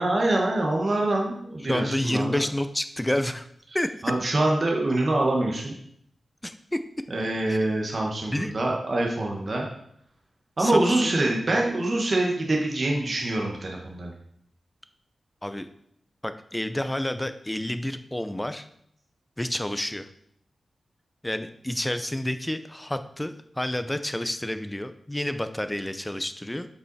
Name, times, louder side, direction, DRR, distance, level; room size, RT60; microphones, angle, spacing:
voice 1, 0.0-2.4 4.0-5.7 7.1-9.6 10.6-14.1, right 2 dB, 40° right, -1 dB, 1.3 m, -25 dB
voice 2, 1.6-3.5 3.7-3.9 6.4-6.8 7.5-7.7 8.3-8.5 10.6-11.2 15.4-15.7 16.2-18.6 19.4-20.1 21.2-26.7, left 1 dB, 10° left, 10 dB, 0.5 m, -29 dB
7.6 x 5.6 x 4.1 m, 0.70 s
wide cardioid pair, 145°, 0 cm